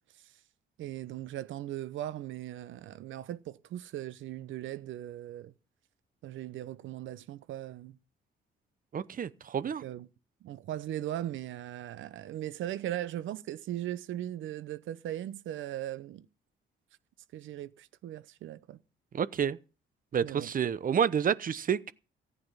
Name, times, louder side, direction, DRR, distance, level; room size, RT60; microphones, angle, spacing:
voice 1, 0.8-5.5 6.2-8.0 9.8-10.1 10.4-16.3 17.3-18.8 20.2-20.5, right 13 dB, 80° right, 0.8 m, -38 dB
voice 2, 8.9-9.8 19.1-19.6 20.1-21.9, right 8 dB, 45° right, 0.8 m, -29 dB
15.0 x 9.6 x 5.6 m
cardioid pair, 90°, 20 cm